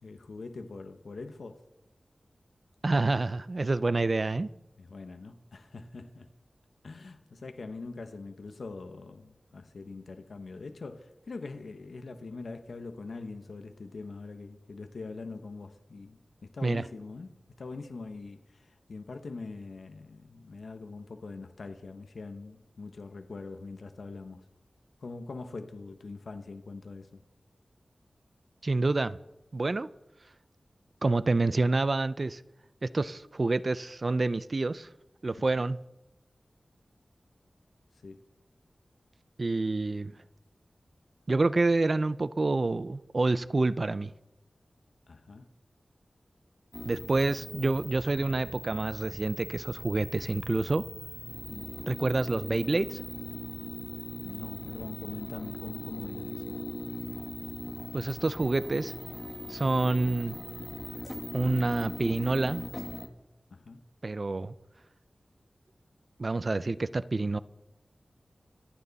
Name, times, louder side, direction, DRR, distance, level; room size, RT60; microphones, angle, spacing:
voice 1, 0.0-1.6 4.8-6.3 6.8-24.4 25.0-27.2 35.4-35.5 38.0-38.2 45.1-45.5 51.5-51.7 54.2-56.6 63.5-63.8, left 3 dB, 80° left, 1.2 m, -43 dB
voice 2, 2.8-4.5 16.6-16.8 28.6-29.2 29.5-29.9 31.0-32.4 32.8-34.9 35.2-35.8 39.4-40.1 41.3-44.1 46.8-50.8 51.9-53.0 57.9-58.9 59.5-60.4 61.3-62.7 64.0-64.5 66.2-67.4, right 3 dB, 50° right, 0.6 m, -28 dB
sound 1, 46.7-63.1, left 1 dB, 25° left, 1.7 m, -40 dB
26.0 x 9.3 x 4.2 m
wide cardioid pair, 75°, 0 cm